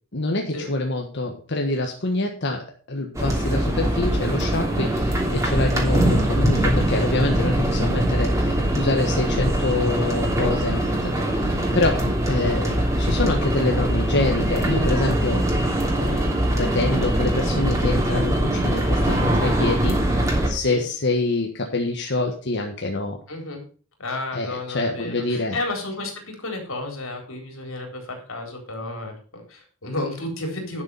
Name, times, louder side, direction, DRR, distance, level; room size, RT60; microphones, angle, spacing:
voice 1, 0.1-15.4 15.9-23.2 24.3-25.6, left 2 dB, 60° left, 2 dB, 1.5 m, -26 dB
sound 1, 3.1-20.5, right 1 dB, 15° right, 3.1 m, -22 dB
voice 2, 23.3-23.6 24.0-30.8, left 2 dB, 85° left, 3 dB, 4.0 m, -32 dB
11.5 x 6.8 x 5.6 m, 0.39 s
head